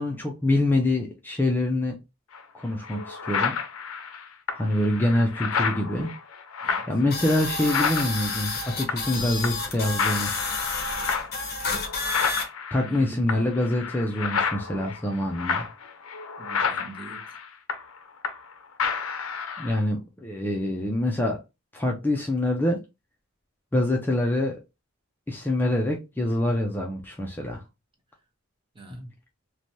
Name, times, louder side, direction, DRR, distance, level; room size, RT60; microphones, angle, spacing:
voice 1, 0.0-2.0 2.5-3.5 4.5-6.1 6.9-10.3 12.7-15.7 19.6-21.4 21.7-22.8 23.7-24.6 25.3-27.6 28.9-29.1, left 1 dB, 10° left, 0.4 m, -25 dB
sound 1, 2.3-2.4 2.8-9.2 9.4-9.7 10.0-18.5 18.8-19.8, left 6 dB, 70° left, 0.5 m, -30 dB
sound 2, 7.1-12.5, left 3 dB, 45° left, 0.8 m, -30 dB
voice 2, 12.8-13.5 16.4-17.4 28.7-29.0, right 1 dB, 25° right, 0.7 m, -42 dB
3.1 x 2.2 x 2.6 m
head